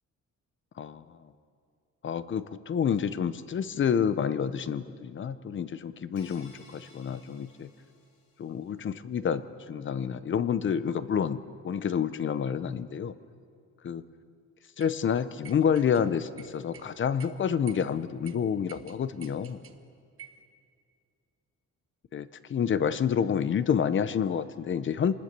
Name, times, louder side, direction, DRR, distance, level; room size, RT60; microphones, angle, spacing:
voice 1, 2.0-7.7 8.4-9.4 9.7-11.4 11.6-13.1 13.8-14.0 14.8-19.6 22.1-25.1, left 7 dB, 40° left, 14 dB, 0.8 m, -28 dB
sound 1, 6.2-8.6, left 3 dB, 70° left, 4.7 m, -57 dB
sound 2, 14.8-14.9 15.4-16.0 16.4-16.9 17.2-17.3 17.7-17.9 18.2-18.3 18.7-19.8 20.2-20.4, right 8 dB, 45° right, 1.2 m, -49 dB
27.5 x 20.0 x 6.8 m, 2.4 s
wide cardioid pair, 180°, 30 cm